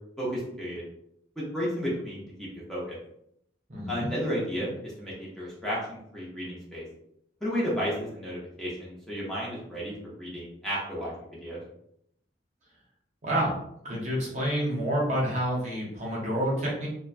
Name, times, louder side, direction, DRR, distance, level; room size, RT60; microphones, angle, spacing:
voice 1, 0.2-0.8 1.4-3.0 3.9-6.8 7.4-11.6, equal, ahead, -7 dB, 0.6 m, -33 dB
voice 2, 3.7-4.1 13.2-13.6 13.8-16.9, equal, 40° right, -4 dB, 0.7 m, -28 dB
2.9 x 2.1 x 2.4 m, 0.75 s
head